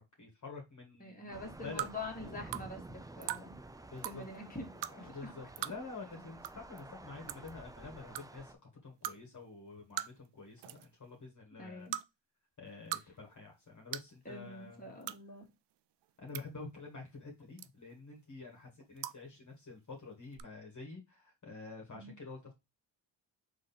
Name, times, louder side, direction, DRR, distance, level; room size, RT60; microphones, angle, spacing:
voice 1, 0.0-1.9 2.2-2.3 3.9-4.2 4.5-4.6 5.0-8.6 8.8-11.9 12.6-15.0 16.2-22.5, left 3 dB, 40° left, 1.7 m, -48 dB
voice 2, 1.0-3.6 4.0-5.3 11.6-12.0 14.3-15.4 21.9-22.2, left 2 dB, 20° left, 2.0 m, -45 dB
sound 1, 1.3-8.5, right 2 dB, 10° right, 0.4 m, -51 dB
sound 2, 1.8-1.9 2.5-2.6 3.2-3.4 4.0-4.2 4.8-4.9 5.6-5.7 6.4-6.5 6.8-6.9 7.3-7.5 8.1-8.2 9.0-9.2 10.0-10.3 10.6-10.9 11.9-12.0 12.7-13.0 13.3-13.4 13.9-14.1 15.0-15.2 16.0-16.4 17.6-17.9 19.0-19.2 20.3-20.4, right 13 dB, 60° right, 0.5 m, -39 dB
3.7 x 3.1 x 4.2 m
cardioid pair, 65°, 47 cm